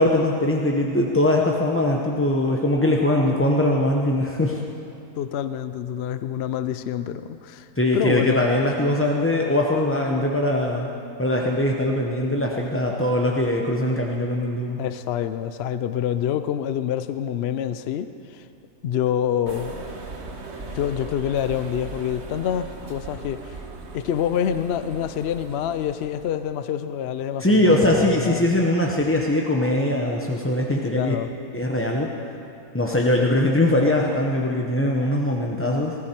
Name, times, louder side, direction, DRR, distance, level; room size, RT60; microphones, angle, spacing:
voice 1, 0.0-4.6 7.8-10.9 11.2-14.8 27.4-31.2 31.5-32.1 32.7-36.0, left 1 dB, 15° left, -1 dB, 0.5 m, -21 dB
voice 2, 5.2-7.7 7.9-8.5 14.8-18.4 18.8-19.8 20.7-23.6 23.9-28.7 30.8-31.3, left 9 dB, 70° left, 11 dB, 0.6 m, -27 dB
sound 1, 19.5-26.4, right 3 dB, 50° right, 1.3 m, -38 dB
19.5 x 13.5 x 4.4 m, 2.7 s
omnidirectional pair, 1.6 m